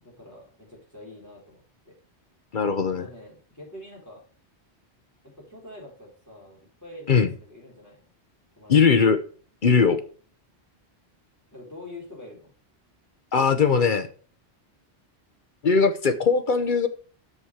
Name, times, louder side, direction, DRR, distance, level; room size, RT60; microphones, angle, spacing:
voice 1, 0.0-2.0 2.9-4.2 5.2-8.1 8.6-8.9 11.5-12.5, left 1 dB, 15° left, -4 dB, 4.1 m, -45 dB
voice 2, 2.5-3.0 7.1-7.3 8.7-9.2 9.6-10.0 13.3-14.1 15.6-16.9, left 5 dB, 50° left, 8 dB, 0.9 m, -20 dB
7.2 x 5.5 x 4.7 m, 0.41 s
omnidirectional pair, 1.1 m